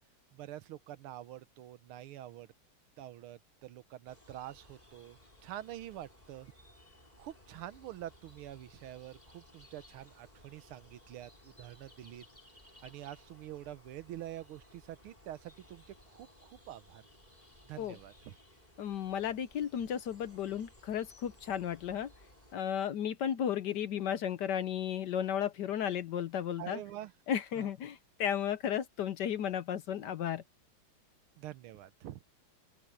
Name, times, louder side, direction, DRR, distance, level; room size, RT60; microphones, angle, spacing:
voice 1, 0.3-2.5 3.0-6.5 7.2-12.2 12.8-17.0 17.7-18.3 26.6-27.1 27.6-27.7 31.4-32.2, right 13 dB, 85° right, 1.7 m, -46 dB
sound 1, 4.1-22.5, left 1 dB, 20° left, 6.4 m, -60 dB
voice 2, 18.8-22.1 22.5-26.8 27.3-30.4, left 9 dB, 65° left, 1.2 m, -34 dB
open air
omnidirectional pair, 2.3 m